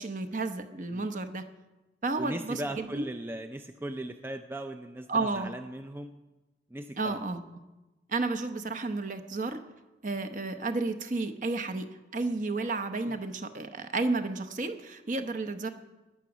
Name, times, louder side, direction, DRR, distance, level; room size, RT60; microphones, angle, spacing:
voice 1, 0.0-1.4 2.0-3.0 5.1-5.5 7.0-7.4 8.1-9.6 10.0-15.7, right 3 dB, 45° right, 7 dB, 0.8 m, -32 dB
voice 2, 2.2-6.1 6.7-7.3 13.1-13.2, right 1 dB, 10° right, 7 dB, 0.4 m, -38 dB
16.0 x 10.5 x 6.1 m, 1.1 s
head